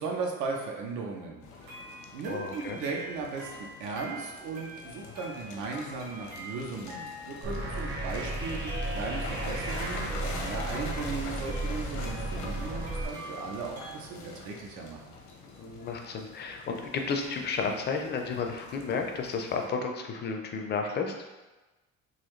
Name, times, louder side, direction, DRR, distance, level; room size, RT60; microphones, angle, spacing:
voice 1, 0.0-1.4 2.1-15.2, right 4 dB, 90° right, 1 dB, 0.8 m, -37 dB
sound 1, 1.4-19.7, left 3 dB, 80° left, 0.8 m, -45 dB
sound 2, 1.6-14.0, right 1 dB, 75° right, 1.3 m, -46 dB
voice 2, 2.2-2.8 15.6-21.1, left 5 dB, 35° left, 3 dB, 0.4 m, -32 dB
sound 3, 7.4-13.0, right 2 dB, 40° right, 0.7 m, -34 dB
4.0 x 2.6 x 3.1 m, 1.1 s
cardioid pair, 150°, 29 cm